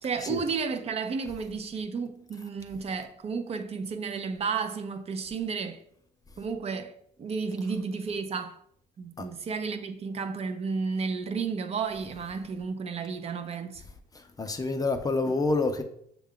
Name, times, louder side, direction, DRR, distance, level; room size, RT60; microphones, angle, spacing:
voice 1, 0.0-5.8 6.4-8.6 9.0-13.8, right 5 dB, 40° right, 0.4 m, -32 dB
voice 2, 14.1-15.8, left 3 dB, 20° left, 0.5 m, -28 dB
6.3 x 2.3 x 3.6 m
cardioid pair, 110°, 17 cm